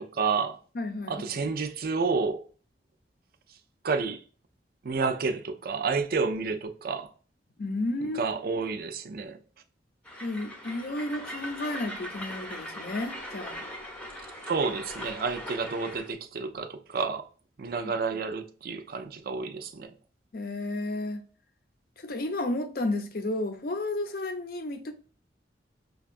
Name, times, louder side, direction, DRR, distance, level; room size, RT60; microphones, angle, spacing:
voice 1, 0.0-0.6 1.1-2.4 3.8-4.2 4.8-7.1 8.2-9.4 14.5-17.3 17.6-19.9, right 4 dB, 55° right, 0.5 m, -30 dB
voice 2, 0.7-1.5 7.6-8.4 10.2-13.6 17.8-18.2 20.3-21.2 22.0-24.9, left 2 dB, 55° left, 0.6 m, -32 dB
Train, 10.0-16.1, equal, 5° left, 0.7 m, -40 dB
5.4 x 2.3 x 2.4 m
head